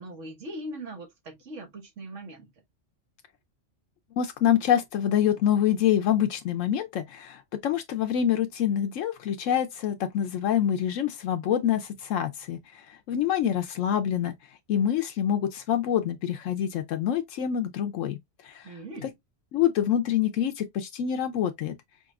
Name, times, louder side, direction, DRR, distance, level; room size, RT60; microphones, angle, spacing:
voice 1, 0.0-2.5 18.6-19.1, right 1 dB, 75° right, 1.7 m, -40 dB
voice 2, 4.2-14.3 14.7-18.2 18.4-19.1 19.5-21.7, left 10 dB, 80° left, 1.0 m, -26 dB
5.1 x 2.9 x 2.3 m
omnidirectional pair, 1.3 m